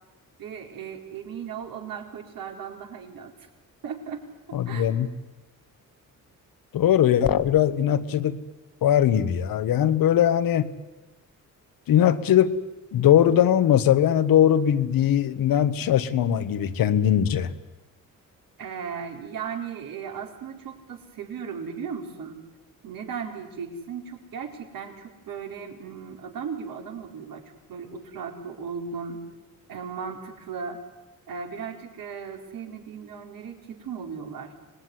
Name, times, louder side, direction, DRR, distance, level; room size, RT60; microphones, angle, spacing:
voice 1, 0.4-3.3 3.8-4.2 4.7-4.9 18.6-22.4 22.8-27.4 27.7-29.3 29.7-30.8 31.3-34.5, right 6 dB, 80° right, 2 dB, 4.5 m, -36 dB
voice 2, 4.5-5.1 6.7-8.4 8.8-10.7 11.9-12.5 12.9-17.5, left 10 dB, 80° left, 11 dB, 1.5 m, -20 dB
26.0 x 20.0 x 9.9 m, 1.1 s
cardioid pair, 120°, 34 cm